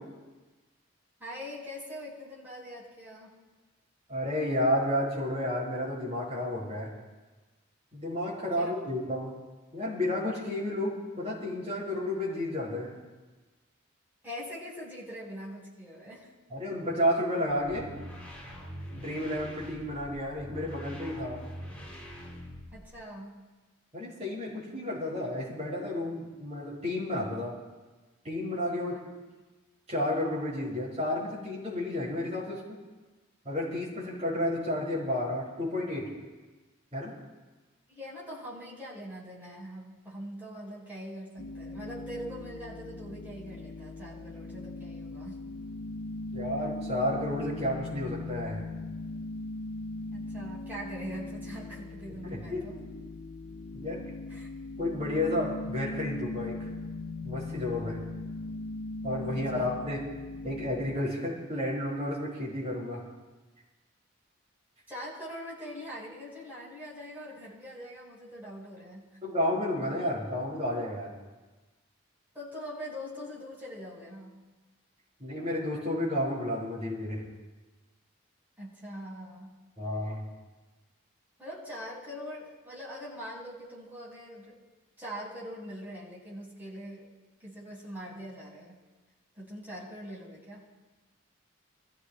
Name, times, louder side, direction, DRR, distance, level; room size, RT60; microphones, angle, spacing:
voice 1, 1.2-3.3 8.5-8.8 14.2-16.3 22.7-23.4 37.9-45.4 50.1-52.8 54.3-54.5 59.3-59.8 64.9-69.0 72.3-74.3 78.6-79.5 81.4-84.6 85.0-87.1 87.4-88.8 89.3-90.6, equal, 10° right, -6 dB, 4.7 m, -42 dB
voice 2, 4.1-6.9 7.9-9.3 9.7-12.9 16.5-17.9 18.9-21.4 23.9-27.5 28.2-29.0 29.9-32.8 33.4-36.1 36.9-37.1 46.3-48.6 52.2-52.6 53.7-54.0 54.8-56.6 57.2-58.0 59.0-60.0 60.4-63.0 69.2-71.1 75.2-77.2 79.8-80.2, left 1 dB, 30° right, -5 dB, 4.9 m, -31 dB
sound 1, 17.6-23.0, equal, 5° left, 4.2 m, -44 dB
sound 2, 41.4-61.0, left 2 dB, 60° left, 0.5 m, -39 dB
27.0 x 15.0 x 2.2 m, 1.2 s
head